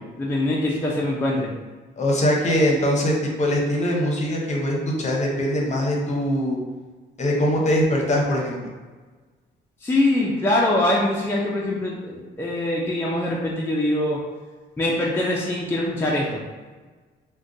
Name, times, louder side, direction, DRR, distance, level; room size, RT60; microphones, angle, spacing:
voice 1, 0.2-1.5 9.8-14.2 14.8-16.4, left 1 dB, 10° left, -5 dB, 0.4 m, -23 dB
voice 2, 2.0-6.6 7.2-8.7, equal, 35° left, -2 dB, 0.8 m, -22 dB
2.5 x 2.2 x 3.7 m, 1.4 s
cardioid pair, 90°, 20 cm